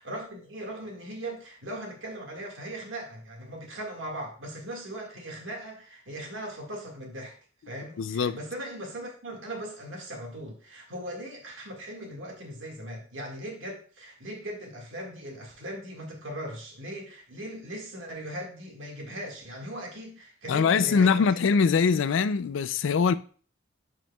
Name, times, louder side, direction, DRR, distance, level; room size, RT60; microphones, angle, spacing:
voice 1, 0.0-7.4 7.7-21.4, right 1 dB, 75° right, 1.8 m, -39 dB
voice 2, 8.0-8.4 20.5-23.2, left 5 dB, 70° left, 0.4 m, -23 dB
12.0 x 4.5 x 2.3 m
head